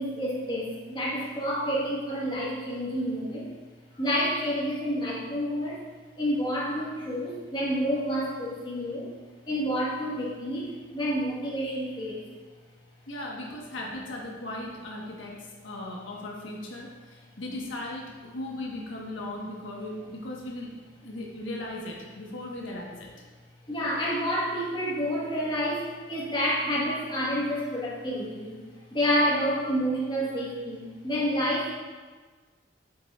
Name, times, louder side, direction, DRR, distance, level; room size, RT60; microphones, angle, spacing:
voice 1, 0.0-3.5 4.0-5.8 6.2-9.1 9.5-12.2 23.7-28.6 28.9-31.7, equal, 25° left, -5 dB, 1.3 m, -29 dB
voice 2, 13.1-15.4 15.6-20.7 21.0-23.1, left 1 dB, 85° left, -2 dB, 1.2 m, -37 dB
8.4 x 6.6 x 2.4 m, 1.4 s
head